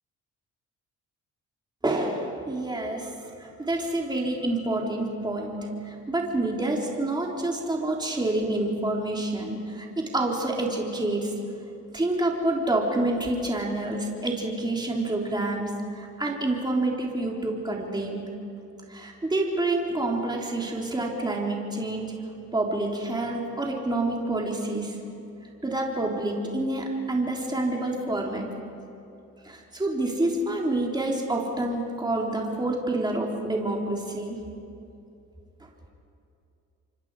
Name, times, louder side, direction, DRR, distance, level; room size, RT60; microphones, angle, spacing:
voice 1, 1.8-3.1 3.4-11.3 11.9-18.2 18.9-22.1 22.5-25.0 25.6-28.5 29.4-34.4, right 2 dB, 15° right, -1 dB, 3.5 m, -28 dB
27.0 x 24.0 x 4.8 m, 2.7 s
cardioid pair, 90°, 30 cm